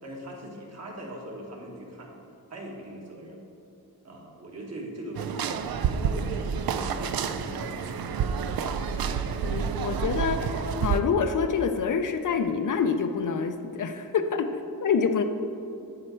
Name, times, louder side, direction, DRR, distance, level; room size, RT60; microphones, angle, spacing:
voice 1, 0.0-2.1 2.5-3.4 4.0-8.1, right 1 dB, 45° right, -1 dB, 1.5 m, -40 dB
sound 1, 5.1-11.0, right 7 dB, 70° right, 0.5 m, -29 dB
voice 2, 9.4-14.5 14.8-15.2, left 6 dB, 55° left, 7 dB, 0.5 m, -26 dB
8.8 x 7.6 x 4.5 m, 2.7 s
wide cardioid pair, 150°, 37 cm